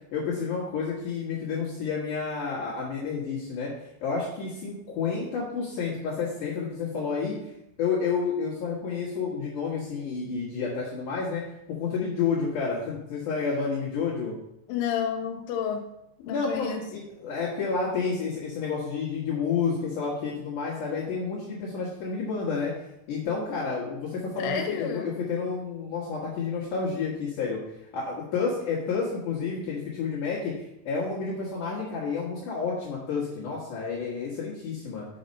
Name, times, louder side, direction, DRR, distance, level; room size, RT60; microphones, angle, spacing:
voice 1, 0.1-3.7 4.0-7.4 7.8-11.4 11.7-14.3 16.3-22.7 23.1-27.6 27.9-35.1, left 5 dB, 60° left, -6 dB, 2.4 m, -30 dB
voice 2, 14.7-15.9 16.2-16.8 24.4-25.1, left 8 dB, 85° left, 4 dB, 3.3 m, -30 dB
6.6 x 6.0 x 5.3 m, 0.84 s
omnidirectional pair, 5.5 m